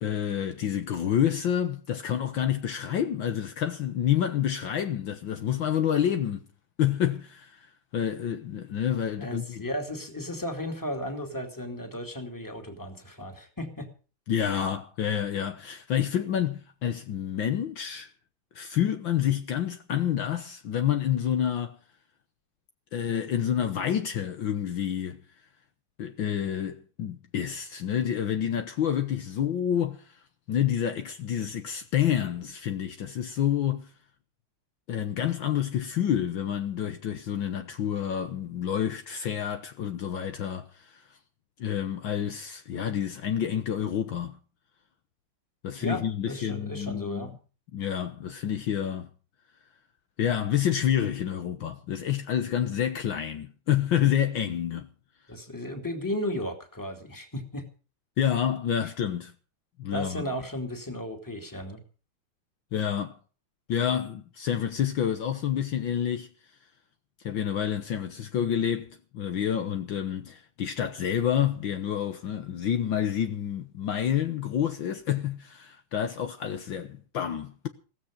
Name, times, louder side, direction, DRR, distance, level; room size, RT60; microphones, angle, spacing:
voice 1, 0.0-6.4 6.8-9.6 14.3-18.1 18.6-21.8 22.9-25.2 26.0-30.2 30.5-33.9 34.9-41.2 41.6-44.4 45.6-47.3 47.7-49.1 50.2-54.9 58.2-59.3 59.8-60.3 62.7-63.2 63.7-66.3 67.2-77.7, left 9 dB, 65° left, 1.7 m, -28 dB
voice 2, 9.2-13.9 45.8-47.4 55.3-57.7 59.9-61.8, left 1 dB, 10° left, 2.6 m, -35 dB
16.0 x 15.0 x 5.1 m
omnidirectional pair, 2.4 m